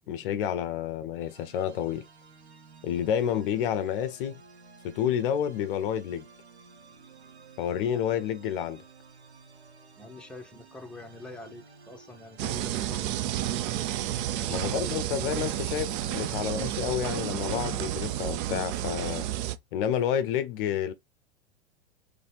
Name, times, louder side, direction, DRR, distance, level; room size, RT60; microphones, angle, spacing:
voice 1, 0.1-2.0 2.8-4.4 4.8-6.2 7.6-8.8 14.5-19.3 19.7-20.9, left 9 dB, 55° left, 0.6 m, -29 dB
sound 1, 1.3-18.4, right 4 dB, 85° right, 1.0 m, -53 dB
voice 2, 10.0-13.6 14.1-14.9, left 2 dB, 5° left, 0.9 m, -46 dB
sound 2, 12.4-19.6, right 12 dB, 45° right, 0.5 m, -31 dB
4.0 x 3.2 x 3.2 m
hypercardioid pair, 95°, 32 cm